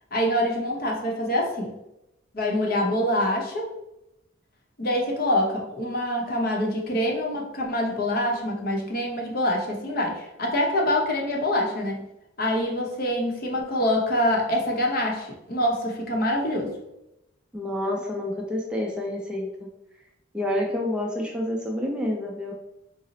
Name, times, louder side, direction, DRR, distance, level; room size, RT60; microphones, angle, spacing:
voice 1, 0.1-1.7 2.3-3.7 4.8-12.0 12.4-16.8, left 1 dB, 50° left, 0 dB, 0.7 m, -25 dB
voice 2, 17.5-19.7 20.3-22.5, left 1 dB, 5° right, -1 dB, 0.4 m, -28 dB
3.9 x 2.0 x 3.9 m, 0.87 s
head